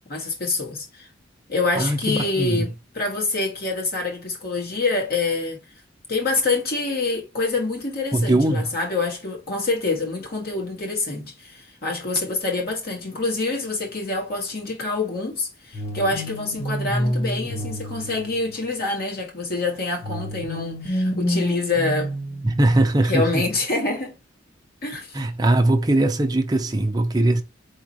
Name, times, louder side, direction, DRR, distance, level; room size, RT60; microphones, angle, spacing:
voice 1, 0.1-1.1 1.5-5.6 6.1-22.1 23.1-24.1 24.8-25.2, left 3 dB, 55° left, 1.7 m, -26 dB
voice 2, 1.8-2.7 8.1-8.7 22.4-23.4 25.1-27.4, right 1 dB, 20° right, 0.6 m, -20 dB
sound 1, 15.7-18.9 20.0-22.9, equal, 35° left, 1.0 m, -28 dB
4.2 x 3.7 x 2.9 m
head